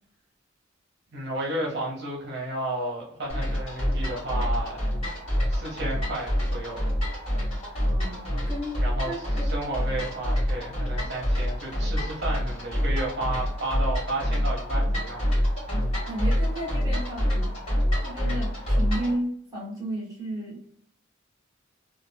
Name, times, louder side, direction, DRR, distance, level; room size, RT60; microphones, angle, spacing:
voice 1, 1.1-4.8 5.5-6.8 8.8-9.1 9.5-15.3, right 1 dB, 60° right, -3 dB, 0.8 m, -32 dB
sound 1, 3.3-19.2, equal, 30° left, 1.4 m, -27 dB
voice 2, 7.8-8.8 9.0-9.7 15.7-17.5 18.0-20.6, right 1 dB, 20° right, -5 dB, 1.1 m, -34 dB
2.5 x 2.3 x 2.5 m, 0.65 s
head